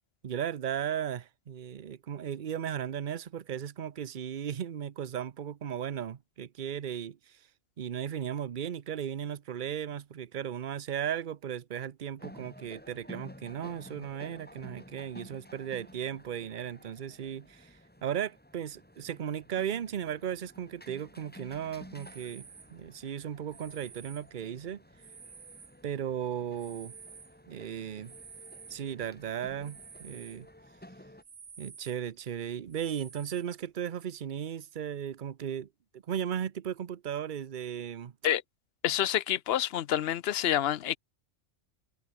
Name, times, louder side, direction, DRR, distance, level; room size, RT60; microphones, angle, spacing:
voice 1, 0.2-7.4 7.8-17.7 18.0-24.8 25.8-26.9 27.5-28.1 28.7-30.5 31.6-35.7 36.1-38.1, right 9 dB, 45° right, 0.8 m, -36 dB
sound 1, 12.2-31.2, left 1 dB, 5° left, 2.5 m, -53 dB
sound 2, 21.5-26.2 26.5-30.4 30.8-30.9 31.2-32.2 32.7-33.7, right 6 dB, 85° right, 2.1 m, -52 dB
voice 2, 38.8-41.0, left 11 dB, 60° left, 0.8 m, -28 dB
omnidirectional pair, 1.3 m